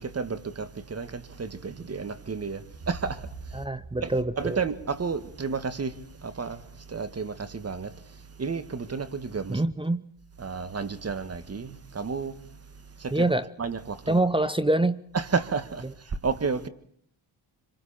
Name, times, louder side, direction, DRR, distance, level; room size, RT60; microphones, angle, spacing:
voice 1, 0.0-3.7 4.0-9.6 10.4-13.3 13.6-14.3 15.1-16.7, right 5 dB, 30° right, 2.0 m, -32 dB
sound 1, 2.7-6.5, right 3 dB, 70° right, 5.4 m, -45 dB
voice 2, 3.5-4.6 9.5-10.0 13.1-13.4 14.1-15.0, right 2 dB, 10° right, 0.8 m, -25 dB
26.5 x 26.0 x 4.4 m
cardioid pair, 90°, 46 cm